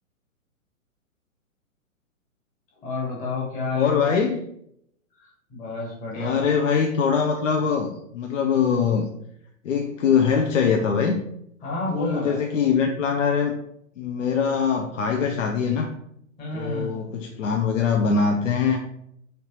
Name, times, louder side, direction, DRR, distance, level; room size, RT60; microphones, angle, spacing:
voice 1, 2.8-4.2 5.2-6.4 11.6-12.4 16.4-16.9, left 3 dB, 20° left, -4 dB, 1.0 m, -30 dB
voice 2, 3.7-4.4 6.1-9.1 9.6-11.2 11.9-13.6 14.0-16.0 16.5-18.8, left 6 dB, 65° left, 3 dB, 0.5 m, -23 dB
3.2 x 2.9 x 2.9 m, 0.75 s
figure-of-eight pair, 120°, 42 cm